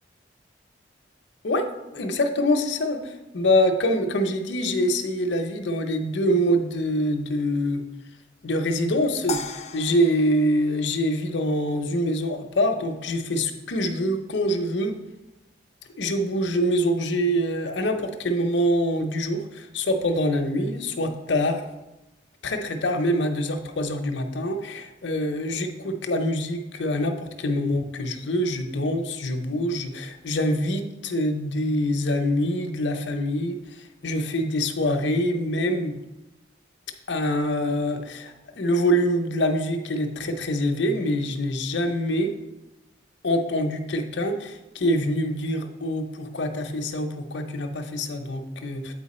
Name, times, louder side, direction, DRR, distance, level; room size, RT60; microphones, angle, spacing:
voice 1, 1.9-7.8 8.4-14.9 16.0-21.6 22.4-35.9 37.1-42.3 43.2-48.9, equal, 65° left, 5 dB, 0.7 m, -25 dB
sound 1, 9.3-11.7, left 4 dB, 35° left, 0.3 m, -37 dB
8.0 x 4.5 x 4.2 m, 1.0 s
head